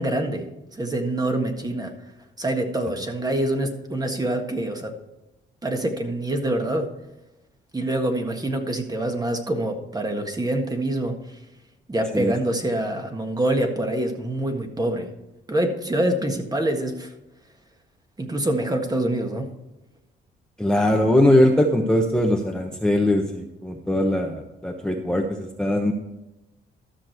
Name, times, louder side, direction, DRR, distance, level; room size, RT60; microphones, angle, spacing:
voice 1, 0.0-1.9 2.4-4.9 5.6-6.9 7.7-11.2 11.9-15.1 15.5-17.1 18.2-19.5, right 1 dB, 20° right, 4 dB, 1.6 m, -25 dB
voice 2, 20.6-25.9, left 1 dB, 5° left, 2 dB, 1.0 m, -21 dB
13.5 x 6.3 x 4.5 m, 0.96 s
cardioid pair, 90°, 20 cm